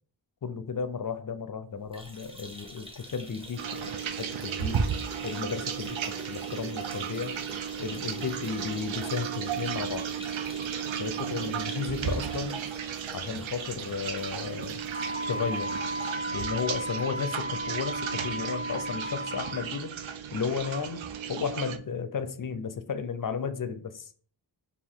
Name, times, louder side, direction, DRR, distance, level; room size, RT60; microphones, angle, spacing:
voice 1, 0.4-4.9 5.2-7.3 7.8-10.1 11.0-12.6 13.1-14.8 15.3-15.8 16.3-19.9 20.3-21.0 21.3-24.1, left 6 dB, 45° left, 0.6 m, -34 dB
sound 1, 1.8-17.2 17.6-17.7 18.0-18.1 19.1-19.2, right 1 dB, 10° right, 1.0 m, -46 dB
sound 2, 3.6-21.8, right 8 dB, 85° right, 0.6 m, -34 dB
Wind instrument woodwind instrument, 14.9-19.7, equal, 40° right, 1.0 m, -35 dB
4.3 x 2.7 x 3.6 m
wide cardioid pair, 75°, 45 cm